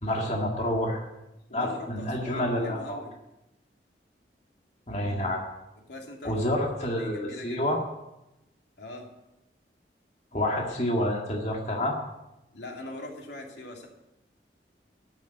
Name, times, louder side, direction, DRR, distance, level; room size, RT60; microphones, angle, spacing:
voice 1, 0.0-1.1 1.5-3.0 4.9-5.4 6.2-7.8 10.3-12.0, left 1 dB, 40° left, -1 dB, 1.9 m, -28 dB
voice 2, 1.5-3.1 5.9-6.4 6.8-7.6 8.8-9.1 12.5-13.9, left 2 dB, 80° left, 1 dB, 2.7 m, -41 dB
13.5 x 7.3 x 9.1 m, 0.94 s
head